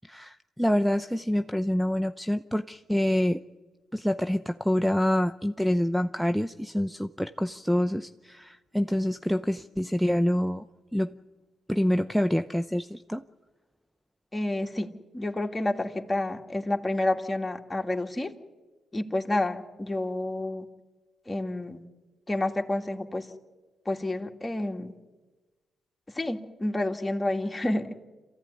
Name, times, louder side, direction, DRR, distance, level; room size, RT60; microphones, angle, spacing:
voice 1, 0.1-3.4 3.9-10.6 10.9-11.1 11.7-13.2, equal, 5° right, 11 dB, 0.7 m, -26 dB
voice 2, 14.3-14.9 15.1-18.3 18.9-20.7 21.3-21.8 22.3-23.3 23.9-24.9 26.1-27.9, left 1 dB, 20° left, 4 dB, 2.3 m, -29 dB
27.0 x 15.0 x 9.8 m, 1.3 s
hypercardioid pair, 50°, 0 cm